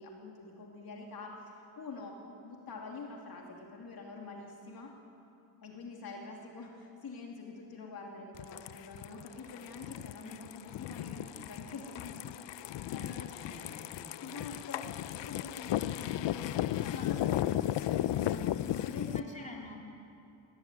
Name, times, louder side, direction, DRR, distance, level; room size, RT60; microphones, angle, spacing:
voice 1, 0.0-2.2 2.4-4.9 5.6-12.2 12.5-13.8 14.2-19.6, left 4 dB, 50° left, 0 dB, 2.8 m, -46 dB
sound 1, 8.4-19.2, left 12 dB, 70° left, 0.6 m, -35 dB
voice 2, 13.3-14.2 18.5-19.8, left 2 dB, 15° left, -1 dB, 3.4 m, -50 dB
19.0 x 18.0 x 9.3 m, 2.6 s
cardioid pair, 130°, 45 cm